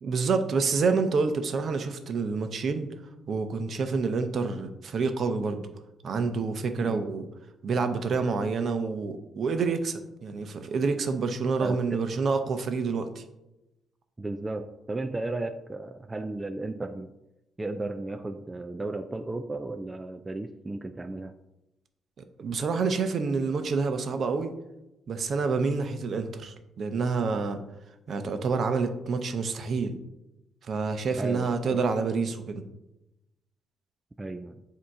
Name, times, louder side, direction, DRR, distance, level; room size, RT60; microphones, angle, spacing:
voice 1, 0.0-2.9 3.3-5.7 6.0-7.3 7.6-13.2 22.4-24.5 25.1-27.6 28.1-30.0 30.7-32.6, right 4 dB, 55° right, 8 dB, 0.7 m, -28 dB
voice 2, 11.6-12.0 14.2-17.1 17.6-21.3 31.2-31.8 34.2-34.6, right 2 dB, 20° right, 8 dB, 0.3 m, -34 dB
7.6 x 2.8 x 4.7 m, 0.93 s
cardioid pair, 90°, 0 cm